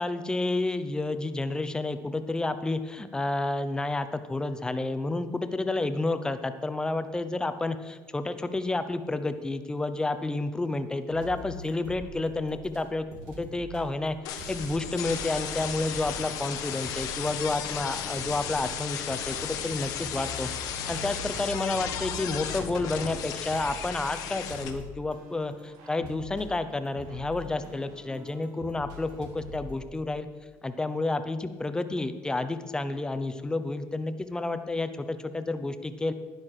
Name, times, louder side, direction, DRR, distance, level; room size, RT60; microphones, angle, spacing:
voice 1, 0.0-30.3 30.6-36.1, left 2 dB, 10° left, 10 dB, 0.8 m, -30 dB
sound 1, 11.1-12.8 13.1-29.8, equal, 90° right, 2.0 m, -44 dB
sound 2, 14.2-24.7, left 9 dB, 75° left, 1.3 m, -35 dB
12.0 x 9.5 x 4.9 m, 1.3 s
cardioid pair, 115°, 6 cm